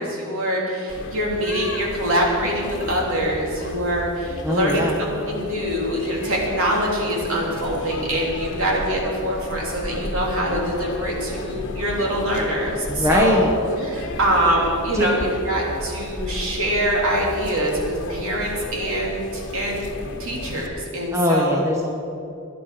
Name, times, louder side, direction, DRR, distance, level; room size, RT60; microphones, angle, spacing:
voice 1, 0.0-13.4 13.8-19.9 20.2-21.7, equal, 65° right, -2 dB, 3.4 m, -24 dB
sound 1, 0.9-20.7, left 1 dB, 55° left, 1.3 m, -33 dB
voice 2, 4.4-5.0 12.9-13.5 14.9-15.1 21.1-21.9, left 1 dB, 15° right, 0 dB, 1.2 m, -21 dB
17.0 x 11.0 x 5.1 m, 2.7 s
head